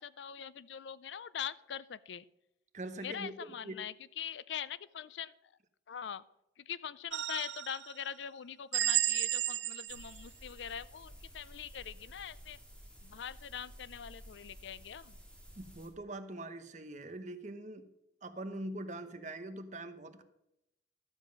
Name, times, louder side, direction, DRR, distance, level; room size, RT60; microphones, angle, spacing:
voice 1, 0.0-2.2 3.0-5.3 5.9-6.2 6.7-12.6 13.0-15.2, left 8 dB, 85° left, 18 dB, 0.5 m, -43 dB
voice 2, 2.7-3.8 15.6-17.9 18.2-20.2, right 1 dB, 45° right, 9 dB, 0.9 m, -43 dB
sound 1, 7.1-7.9 8.7-10.2, right 12 dB, 75° right, 0.5 m, -32 dB
sound 2, 9.9-15.9, equal, 5° left, 2.1 m, -53 dB
12.5 x 7.5 x 5.2 m, 0.85 s
head